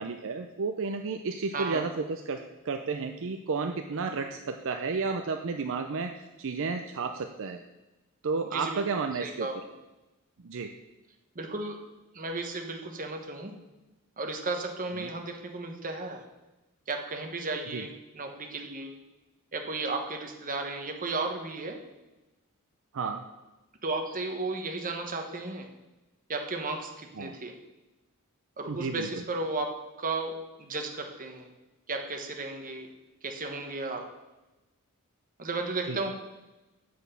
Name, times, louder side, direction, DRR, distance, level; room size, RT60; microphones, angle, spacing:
voice 1, 0.0-2.4 2.6-6.1 6.4-7.6 8.2-9.5 10.4-10.7 15.0-15.1 17.7-17.8 22.9-23.2 27.2-27.3 28.7-29.1 35.9-36.0, right 4 dB, 60° right, 5 dB, 0.5 m, -32 dB
voice 2, 1.5-1.8 8.5-8.8 9.2-9.5 11.3-11.8 12.1-13.5 14.2-16.2 16.9-18.9 19.5-21.8 23.8-25.7 26.3-27.5 28.6-29.7 30.0-30.3 30.6-31.5 31.9-32.9 33.2-34.1 35.4-36.1, right 3 dB, 40° right, 4 dB, 1.2 m, -34 dB
7.8 x 6.3 x 6.9 m, 1.0 s
head